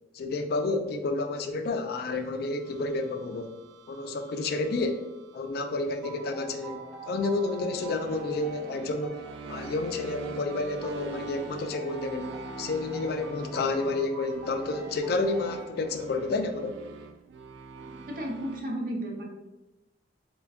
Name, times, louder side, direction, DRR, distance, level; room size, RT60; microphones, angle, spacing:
voice 1, 0.1-3.5 3.9-5.1 5.3-9.2 9.5-16.8, left 3 dB, 60° left, 6 dB, 0.3 m, -30 dB
sound 1, 2.1-18.6, right 4 dB, 85° right, 0.3 m, -45 dB
sound 2, 6.0-16.4, right 2 dB, ahead, 0.5 m, -45 dB
voice 2, 18.1-19.2, right 1 dB, 50° right, 1 dB, 0.7 m, -33 dB
3.3 x 2.2 x 3.5 m, 1.0 s
head